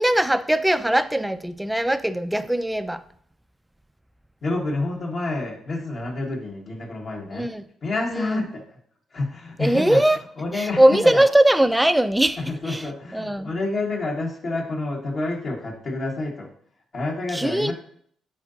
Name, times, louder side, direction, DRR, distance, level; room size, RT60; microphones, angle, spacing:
voice 1, 0.0-3.0 7.3-7.6 8.2-8.4 9.6-10.2 10.5-12.4 12.7-12.8 13.1-13.5 17.3-17.7, right 1 dB, 5° right, 0.4 m, -20 dB
voice 2, 4.4-7.5 7.8-8.6 9.1-11.2 12.4-16.5 16.9-17.7, left 2 dB, 50° left, 1.5 m, -28 dB
9.3 x 4.0 x 2.7 m
cardioid pair, 90°, 0 cm